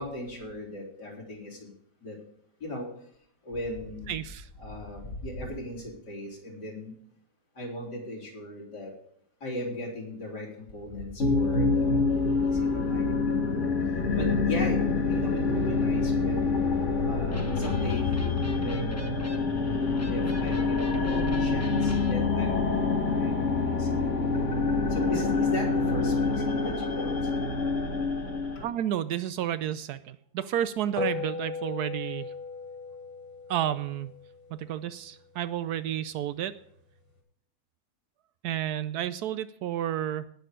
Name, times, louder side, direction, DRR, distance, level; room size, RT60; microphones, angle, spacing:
voice 1, 0.0-1.7 2.0-2.2 2.6-2.9 3.5-4.2 4.6-6.9 7.6-8.9 9.4-10.5 10.7-12.1 12.4-13.6 14.1-14.8 15.1-16.6 17.0-18.2 18.5-19.5 20.1-24.0 24.9-27.1, left 1 dB, 85° left, -2 dB, 4.1 m, -37 dB
voice 2, 4.1-4.5 28.6-32.3 33.5-34.1 34.5-36.5 38.4-40.3, right 11 dB, 75° right, 14 dB, 1.1 m, -31 dB
sound 1, 11.2-28.7, left 4 dB, 45° left, 2.0 m, -26 dB
Electric guitar, 17.3-22.2, left 2 dB, 10° left, 0.9 m, -40 dB
sound 2, 31.0-35.6, left 5 dB, 35° right, 3.7 m, -37 dB
17.5 x 6.4 x 5.0 m, 0.67 s
omnidirectional pair, 1.7 m